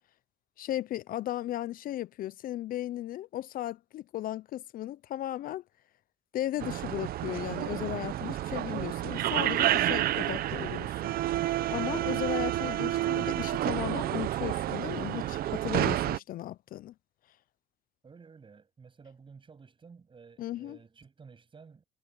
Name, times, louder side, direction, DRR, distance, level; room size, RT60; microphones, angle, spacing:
voice 1, 0.6-5.6 6.3-11.1 11.4-16.9 20.4-20.8, left 13 dB, 60° left, 0.5 m, -36 dB
sound 1, 6.6-16.2, right 14 dB, 60° right, 0.7 m, -30 dB
voice 2, 18.0-21.8, right 5 dB, 30° right, 7.9 m, -53 dB
cardioid pair, 110°, 17 cm